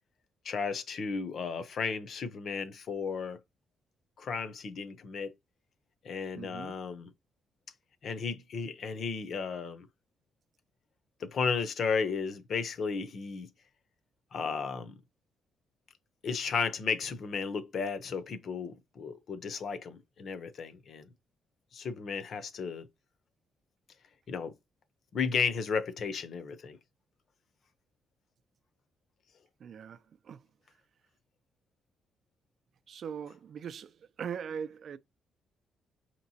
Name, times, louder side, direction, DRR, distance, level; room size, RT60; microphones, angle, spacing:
voice 1, 0.4-3.4 4.2-5.3 6.0-7.1 8.0-9.9 11.2-13.5 14.3-14.9 16.2-21.1 21.7-22.9 24.3-24.5 25.1-26.8, left 5 dB, 55° left, 0.7 m, -34 dB
voice 2, 6.3-6.8 29.6-30.5 32.9-35.0, right 7 dB, 55° right, 0.4 m, -41 dB
5.2 x 2.9 x 2.7 m
cardioid pair, 125°, 0 cm